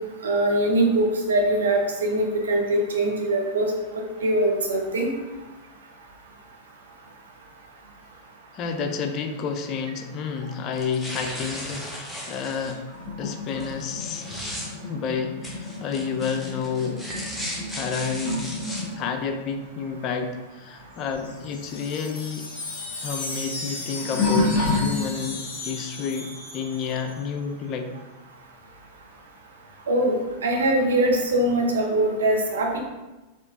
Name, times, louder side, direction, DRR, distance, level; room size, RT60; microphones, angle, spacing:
voice 1, 0.2-3.6 4.2-5.1 29.9-30.1 30.4-32.8, right 1 dB, 65° right, 0 dB, 0.7 m, -22 dB
voice 2, 8.5-12.8 13.2-14.2 14.9-17.0 17.7-18.5 19.0-22.5 23.0-27.9, left 6 dB, 35° left, 6 dB, 0.4 m, -30 dB
sound 1, 10.7-12.7 13.6-14.7 15.4-18.8, equal, 5° left, 0.7 m, -36 dB
sound 2, 12.9-20.9 21.1-25.5 26.1-26.4 28.6-28.7 29.6-29.7, left 2 dB, 20° left, 1.4 m, -31 dB
Wind chime, 21.0-27.2, left 3 dB, 55° left, 0.9 m, -36 dB
4.3 x 3.2 x 2.5 m, 1.1 s
figure-of-eight pair, 90°, 0 cm